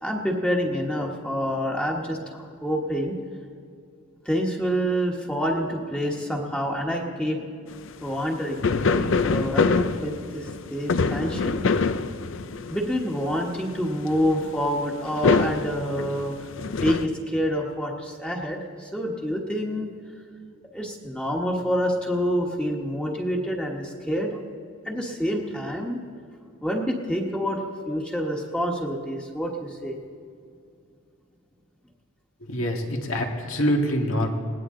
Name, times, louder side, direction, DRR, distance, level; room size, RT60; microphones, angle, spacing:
voice 1, 0.0-3.1 4.2-7.5 8.0-11.6 12.7-16.5 16.7-19.9 20.7-24.4 24.8-26.0 26.6-27.6 27.9-30.0, equal, 5° left, -1 dB, 1.3 m, -27 dB
sound 1, 7.9-8.0 8.3-8.4 8.6-13.0 13.7-13.8 14.0-14.6 15.1-17.1, left 4 dB, 70° left, 0.5 m, -24 dB
voice 2, 32.5-34.3, equal, 85° left, 2 dB, 1.9 m, -25 dB
20.5 x 17.5 x 3.8 m, 2.4 s
head